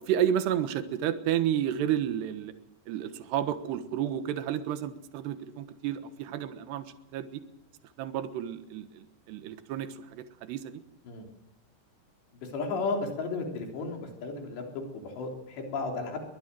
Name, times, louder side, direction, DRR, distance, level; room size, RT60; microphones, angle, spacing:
voice 1, 0.0-2.5 2.9-7.4 8.0-10.8, right 10 dB, 75° right, 10 dB, 3.4 m, -31 dB
voice 2, 12.3-16.2, left 3 dB, 80° left, 2 dB, 5.7 m, -34 dB
22.5 x 19.0 x 7.6 m, 0.86 s
omnidirectional pair, 4.9 m